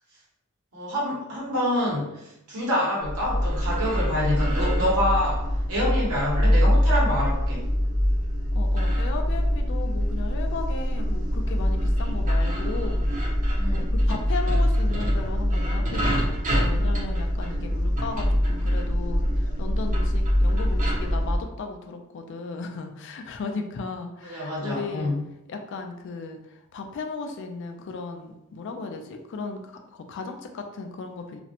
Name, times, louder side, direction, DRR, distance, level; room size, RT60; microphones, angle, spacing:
voice 1, 0.7-7.7 13.5-13.8 24.2-25.2, left 1 dB, 85° right, -5 dB, 1.0 m, -27 dB
sound 1, 3.0-21.4, equal, 35° right, 0.5 m, -24 dB
voice 2, 8.5-13.0 13.7-25.1 25.5-31.4, left 4 dB, 55° left, 5 dB, 0.3 m, -36 dB
2.4 x 2.0 x 2.8 m, 0.86 s
head